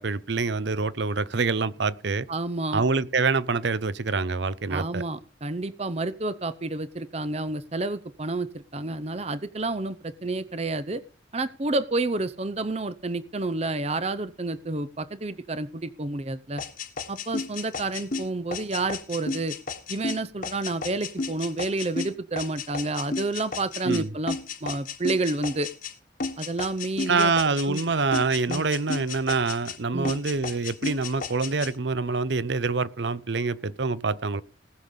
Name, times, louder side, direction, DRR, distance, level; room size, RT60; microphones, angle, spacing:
voice 1, 0.0-2.3 2.7-5.0 23.8-24.1 27.1-34.4, right 4 dB, 70° right, 0.7 m, -26 dB
voice 2, 2.3-2.8 4.7-11.0 11.3-16.6 17.1-19.6 19.9-25.7 26.4-27.3 27.6-27.8 28.5-28.7 29.9-30.1, right 2 dB, 35° right, 0.7 m, -30 dB
sound 1, 16.6-25.9 26.2-27.9 28.1-29.8 30.0-31.7, left 4 dB, 45° left, 1.4 m, -33 dB
19.0 x 6.7 x 5.5 m
head